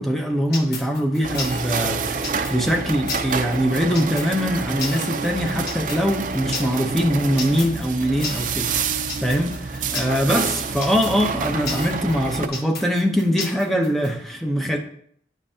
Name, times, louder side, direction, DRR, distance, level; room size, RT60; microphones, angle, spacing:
voice 1, 0.0-14.8, equal, ahead, 0.7 m, -23 dB
sound 1, 0.5-14.1, left 4 dB, 60° left, 1.2 m, -33 dB
sound 2, 1.2-12.5, right 5 dB, 45° right, 0.5 m, -28 dB
9.7 x 5.5 x 2.8 m
head